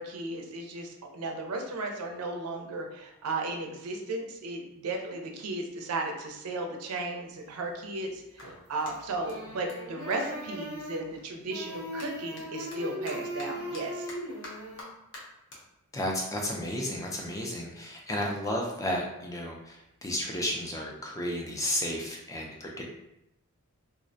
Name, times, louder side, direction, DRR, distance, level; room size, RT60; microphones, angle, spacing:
voice 1, 0.0-14.1, right 2 dB, 85° right, 3 dB, 0.4 m, -35 dB
Clapping, 8.3-11.1 11.4-18.0, left 1 dB, 55° left, 0.7 m, -50 dB
sound 1, 8.4-8.8 9.1-11.2 11.5-14.8, equal, 90° left, 1.2 m, -39 dB
voice 2, 15.9-22.9, left 1 dB, 15° left, -1 dB, 0.3 m, -33 dB
2.3 x 2.0 x 2.5 m, 0.86 s
head